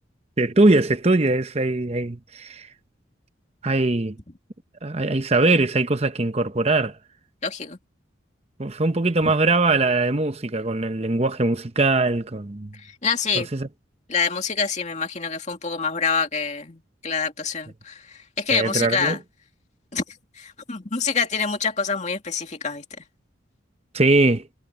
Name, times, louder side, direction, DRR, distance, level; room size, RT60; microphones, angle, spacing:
voice 1, 0.4-2.7 3.6-4.2 4.8-6.9 8.6-12.7 13.3-13.7 18.5-19.2 23.9-24.4, right 2 dB, 30° right, 0.9 m, -21 dB
voice 2, 7.4-7.8 12.8-13.5 14.1-19.2 19.9-20.0 20.4-22.8, left 5 dB, 35° left, 2.5 m, -26 dB
head